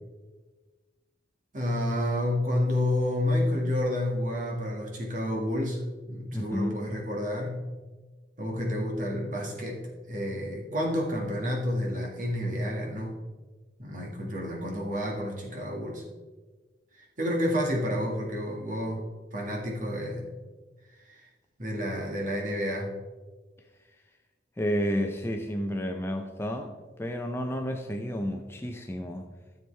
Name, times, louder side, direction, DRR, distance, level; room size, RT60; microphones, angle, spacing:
voice 1, 1.5-5.8 6.1-7.6 8.4-9.8 10.1-13.1 13.8-16.0 16.9-19.1 19.3-20.3 21.1-21.3 21.6-22.9, left 1 dB, 45° right, -1 dB, 1.8 m, -30 dB
voice 2, 6.3-6.8 24.6-29.3, equal, 15° left, 3 dB, 0.5 m, -31 dB
13.5 x 7.0 x 3.3 m, 1.3 s
head